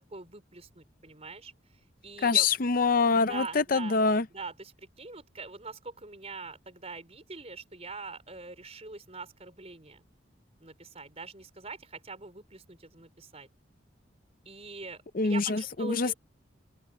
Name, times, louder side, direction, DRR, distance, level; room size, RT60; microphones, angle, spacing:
voice 1, 0.1-1.5 2.0-2.5 3.2-4.0 4.3-10.0 10.6-13.5 14.4-16.1, right 3 dB, 35° right, 4.5 m, -43 dB
voice 2, 2.2-4.2 15.1-16.1, left 4 dB, 45° left, 0.6 m, -25 dB
open air
head